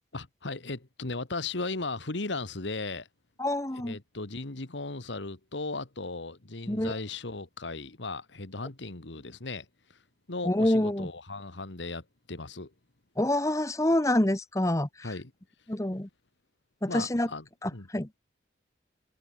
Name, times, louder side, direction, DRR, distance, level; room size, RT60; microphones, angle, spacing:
voice 1, 0.1-3.1 3.7-10.0 10.3-12.7 15.0-15.3 16.9-17.5 17.7-17.9, left 3 dB, 90° left, 1.8 m, -37 dB
voice 2, 3.4-4.0 6.7-6.9 10.4-11.1 13.2-15.1 15.7-16.1 16.8-17.3 17.6-18.1, left 1 dB, 15° left, 1.0 m, -27 dB
head